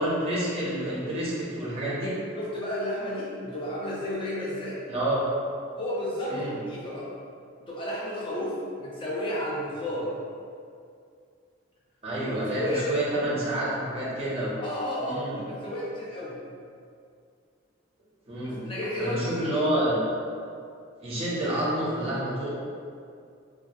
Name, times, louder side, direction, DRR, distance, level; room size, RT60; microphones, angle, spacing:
voice 1, 0.0-2.1 4.9-5.2 6.2-6.6 12.0-14.6 15.0-15.4 18.3-18.6 19.0-20.0 21.0-22.5, right 1 dB, 30° right, -8 dB, 0.6 m, -28 dB
voice 2, 2.4-4.8 5.8-6.4 6.7-7.1 7.7-10.1 12.3-12.9 14.6-16.4 18.4-19.5, left 1 dB, 25° left, -6 dB, 0.5 m, -32 dB
2.2 x 2.0 x 2.8 m, 2.3 s
head